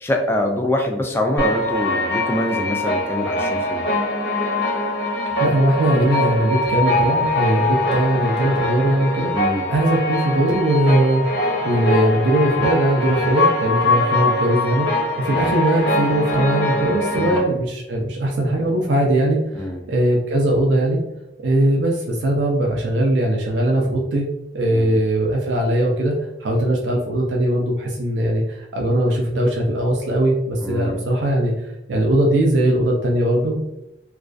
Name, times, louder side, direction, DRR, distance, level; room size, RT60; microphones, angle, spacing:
voice 1, 0.0-3.8 9.3-9.6 17.1-17.4 19.5-19.8 24.7-25.0 30.6-31.0, left 1 dB, 15° left, 2 dB, 0.3 m, -24 dB
happy tales, 1.4-17.4, left 1 dB, 70° left, 0.7 m, -22 dB
voice 2, 5.4-9.3 9.7-11.4 11.6-21.0 21.4-24.3 24.5-26.1 26.4-31.5 31.9-33.6, right 1 dB, 85° right, -1 dB, 0.4 m, -20 dB
2.3 x 2.3 x 2.4 m, 0.87 s
head